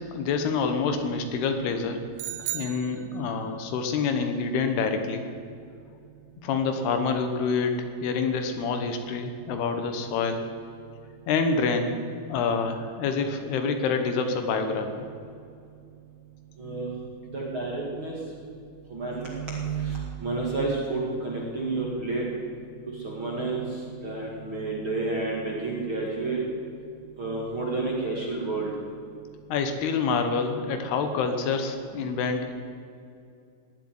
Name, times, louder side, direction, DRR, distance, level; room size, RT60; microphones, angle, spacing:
voice 1, 0.0-2.0 2.5-5.2 6.4-10.5 11.3-12.0 12.3-15.0 29.5-32.5, left 5 dB, 75° left, 7 dB, 3.0 m, -27 dB
sound 1, 2.2-3.6, right 15 dB, 80° right, 2.9 m, -35 dB
voice 2, 16.6-16.9 17.2-18.1 18.9-22.2 22.9-26.4 27.2-28.7, right 3 dB, 40° right, -3 dB, 2.1 m, -30 dB
18.5 x 8.0 x 9.6 m, 2.5 s
omnidirectional pair, 5.0 m